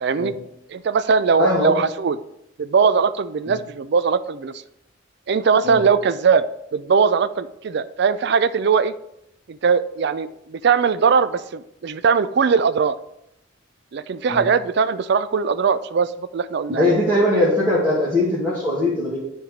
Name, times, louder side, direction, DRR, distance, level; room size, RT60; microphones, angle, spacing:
voice 1, 0.0-0.3 0.7-2.2 2.6-4.5 5.3-6.4 6.7-8.9 9.5-13.0 13.9-16.9, right 5 dB, 60° right, 15 dB, 0.4 m, -20 dB
voice 2, 1.4-1.8 3.5-3.6 5.6-5.8 14.3-14.4 16.7-19.2, left 1 dB, 15° right, -9 dB, 2.3 m, -20 dB
10.0 x 4.5 x 5.0 m, 0.81 s
head